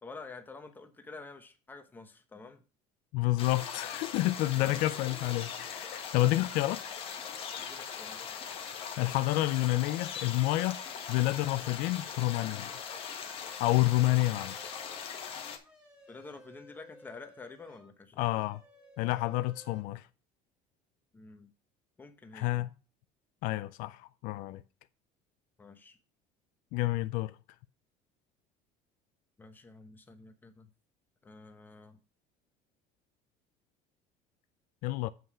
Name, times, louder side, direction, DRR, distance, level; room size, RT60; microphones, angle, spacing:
voice 1, 0.0-2.6 4.5-5.0 7.5-8.3 16.1-18.3 21.1-21.5 22.0-22.6 25.6-26.0 29.4-30.7 31.2-32.0, left 3 dB, 10° left, 0.9 m, -49 dB
voice 2, 3.1-6.8 9.0-10.8 11.1-12.7 13.6-14.7 18.2-18.6 19.0-20.0 22.3-22.7 23.4-24.6 26.7-27.3 34.8-35.1, left 17 dB, 65° left, 0.4 m, -29 dB
sound 1, 3.4-15.6, left 7 dB, 35° left, 1.4 m, -40 dB
sound 2, 14.1-17.9 18.2-19.8, equal, 5° right, 1.8 m, -56 dB
7.8 x 5.5 x 4.8 m
cardioid pair, 170°, 16 cm